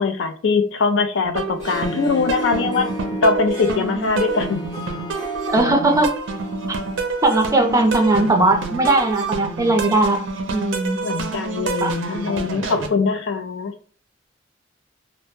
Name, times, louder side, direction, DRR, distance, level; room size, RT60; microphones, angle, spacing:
voice 1, 0.0-2.9 3.2-4.6 11.0-13.7, left 4 dB, 70° left, 0.4 m, -22 dB
sound 1, 1.2-12.9, right 4 dB, 75° right, 0.4 m, -28 dB
Harp, 1.5-8.9, right 1 dB, 25° left, 0.7 m, -33 dB
voice 2, 5.4-6.2 7.2-10.2 10.5-11.0 11.8-12.0, right 2 dB, 15° right, 0.4 m, -18 dB
2.1 x 2.0 x 3.0 m
head